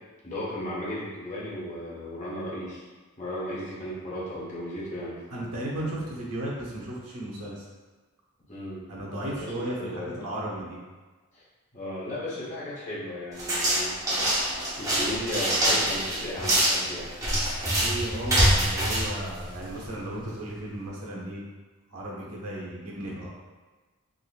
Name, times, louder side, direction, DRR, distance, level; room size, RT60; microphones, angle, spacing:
voice 1, 0.2-2.8 3.2-5.6 8.5-10.3 11.3-11.4 11.7-13.9 14.8-17.1, left 1 dB, 35° left, -7 dB, 1.0 m, -35 dB
voice 2, 5.3-7.7 8.9-10.8 17.6-21.4 21.9-23.3, right 1 dB, 80° right, -4 dB, 0.9 m, -35 dB
sound 1, 13.4-19.9, right 1 dB, 15° right, 0.7 m, -25 dB
3.7 x 2.9 x 2.4 m, 1.3 s
head